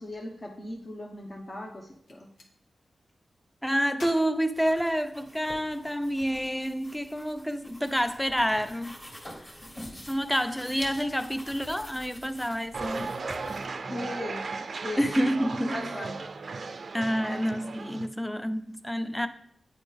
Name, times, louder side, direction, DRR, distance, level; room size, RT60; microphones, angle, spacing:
voice 1, 0.0-2.3 13.8-14.4 14.8-15.1 15.7-16.1, left 2 dB, 45° left, 0.9 m, -38 dB
Gunshot gunfire, 2.0-2.5 3.9-5.4, left 2 dB, 85° left, 1.0 m, -49 dB
voice 2, 3.6-8.9 10.1-13.1 15.0-15.9 16.9-19.3, equal, 5° left, 0.5 m, -28 dB
sound 1, 4.4-13.7, equal, 25° left, 1.7 m, -47 dB
sound 2, 12.7-18.1, right 4 dB, 65° right, 0.4 m, -36 dB
8.9 x 4.1 x 3.3 m
cardioid pair, 65°, 0 cm